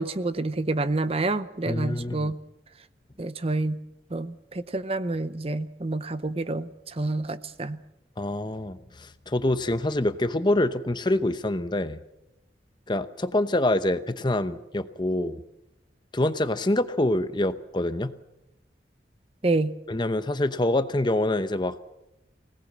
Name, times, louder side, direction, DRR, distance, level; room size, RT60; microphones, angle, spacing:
voice 1, 0.0-2.4 3.2-3.8 4.1-6.7 7.0-7.8 19.4-19.7, right 2 dB, 35° right, 13 dB, 0.8 m, -28 dB
voice 2, 1.7-2.3 8.2-12.0 12.9-15.4 16.1-18.1 19.9-21.8, left 1 dB, 25° left, 11 dB, 0.8 m, -26 dB
24.5 x 18.0 x 7.5 m, 0.91 s
head